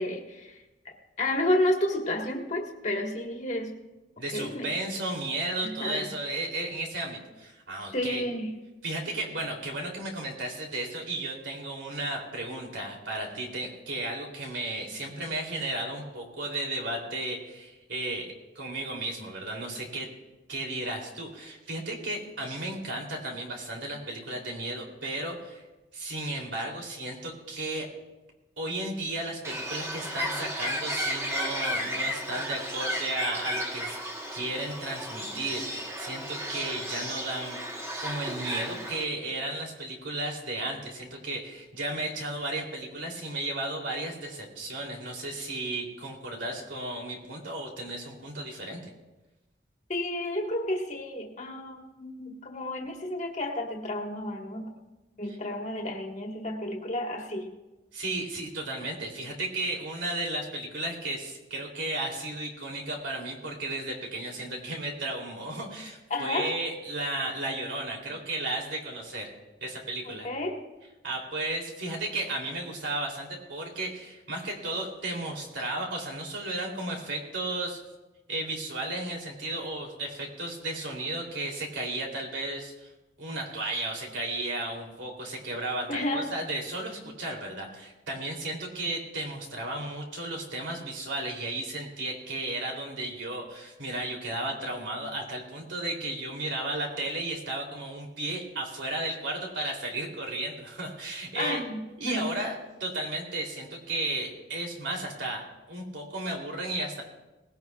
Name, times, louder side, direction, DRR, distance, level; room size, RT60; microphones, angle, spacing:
voice 1, 0.0-3.8 4.3-4.7 5.6-6.1 7.9-8.5 49.9-54.7 55.2-57.5 66.1-66.5 70.0-70.6 85.9-86.3 101.4-102.2, left 1 dB, 40° left, 1 dB, 1.6 m, -31 dB
voice 2, 4.2-8.2 8.8-20.1 20.5-25.6 25.9-27.9 28.6-34.0 34.3-48.9 57.9-69.3 69.6-70.3 71.0-77.8 78.3-82.9 83.2-101.6 102.0-102.5 102.8-105.4 105.7-107.0, right 2 dB, 80° right, 0 dB, 3.2 m, -34 dB
Bird, 29.4-39.0, equal, 15° right, 1.2 m, -33 dB
19.5 x 16.5 x 2.4 m, 1.1 s
head